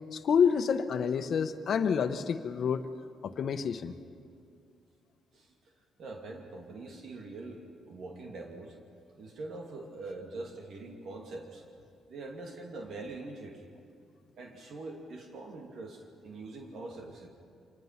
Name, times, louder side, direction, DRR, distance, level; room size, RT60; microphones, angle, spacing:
voice 1, 0.1-2.8 3.2-3.9, left 6 dB, 60° left, 9 dB, 1.2 m, -28 dB
voice 2, 5.3-5.7 6.0-8.8 9.2-11.6 12.1-13.7 14.4-17.3, right 2 dB, 65° right, 1 dB, 2.5 m, -43 dB
26.0 x 20.0 x 5.9 m, 2.3 s
cardioid pair, 90°, 0 cm